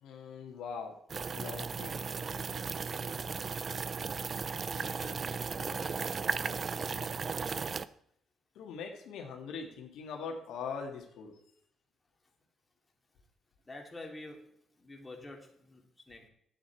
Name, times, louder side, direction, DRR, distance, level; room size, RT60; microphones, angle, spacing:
voice 1, 0.0-0.9 1.3-2.0 8.6-11.3, left 5 dB, 85° left, 2 dB, 1.8 m, -41 dB
sound 1, 1.1-7.9, right 5 dB, 40° right, 0.5 m, -36 dB
voice 2, 4.8-6.0 13.6-16.3, left 2 dB, 15° left, 1 dB, 2.7 m, -48 dB
11.0 x 9.0 x 4.6 m, 0.68 s
cardioid pair, 90°, 0 cm